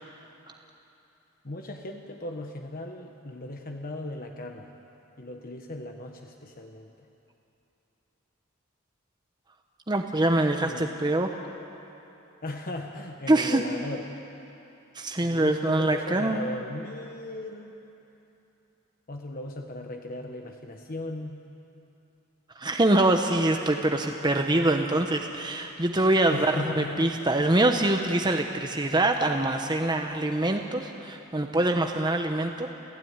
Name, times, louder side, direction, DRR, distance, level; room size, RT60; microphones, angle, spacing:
voice 1, 1.4-4.7 5.2-6.9 10.6-11.0 12.4-14.1 15.2-17.7 19.1-21.4 26.3-27.1, left 1 dB, 40° left, 3 dB, 1.2 m, -37 dB
voice 2, 9.9-11.3 13.3-13.6 14.9-16.4 22.6-32.7, right 2 dB, 20° right, 4 dB, 0.9 m, -24 dB
28.5 x 16.0 x 9.6 m, 3.0 s
head